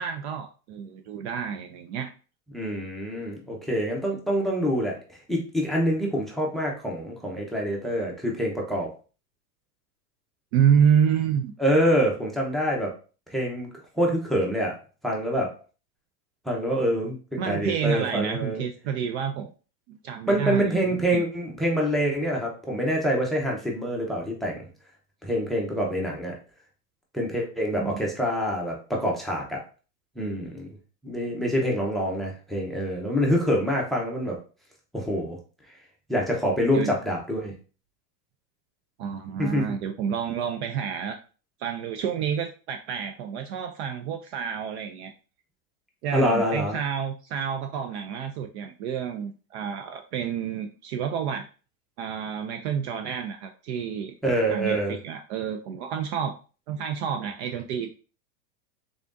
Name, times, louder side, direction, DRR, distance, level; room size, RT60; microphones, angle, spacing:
voice 1, 0.0-2.1 10.5-11.5 17.4-19.5 19.9-21.2 27.8-27.9 36.7-36.9 39.0-41.2 41.6-45.1 46.0-51.5 52.0-54.1 54.5-56.4 56.7-57.9, right 8 dB, 50° right, 6 dB, 0.4 m, -28 dB
voice 2, 2.5-8.9 11.6-12.9 13.3-13.7 13.9-14.8 15.0-15.5 16.5-17.2 17.4-18.6 20.3-24.6 25.2-26.3 27.1-29.6 30.2-30.7 31.0-34.4 34.9-35.4 36.1-37.5 39.4-39.6 46.1-46.8 54.2-55.0, equal, ahead, -1 dB, 0.7 m, -26 dB
3.6 x 3.4 x 2.5 m, 0.36 s
supercardioid pair, 130°, 48 cm